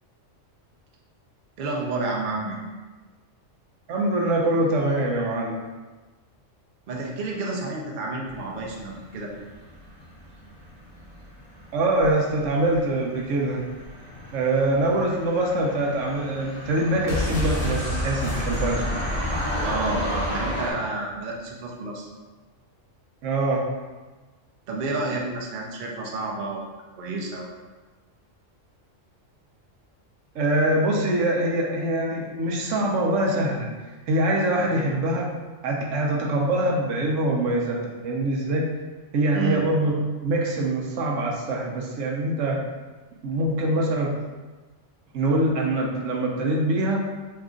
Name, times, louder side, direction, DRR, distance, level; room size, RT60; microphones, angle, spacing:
voice 1, 1.6-2.6 6.9-9.3 19.6-20.0 20.3-22.1 24.7-26.7 27.0-27.5 39.3-39.6, right 3 dB, 55° right, -1 dB, 0.6 m, -30 dB
voice 2, 3.9-5.6 11.7-13.6 14.3-19.0 23.2-23.6 30.3-33.7 34.1-35.3 35.6-38.7 39.1-42.6 43.2-44.1 45.1-47.0, right 1 dB, 80° right, -1 dB, 0.9 m, -24 dB
sound 1, 8.3-20.7, equal, 20° right, 1.1 m, -34 dB
sound 2, 17.1-20.9 21.1-21.2, left 1 dB, 30° left, 1.0 m, -29 dB
2.8 x 2.4 x 3.6 m, 1.3 s
omnidirectional pair, 1.3 m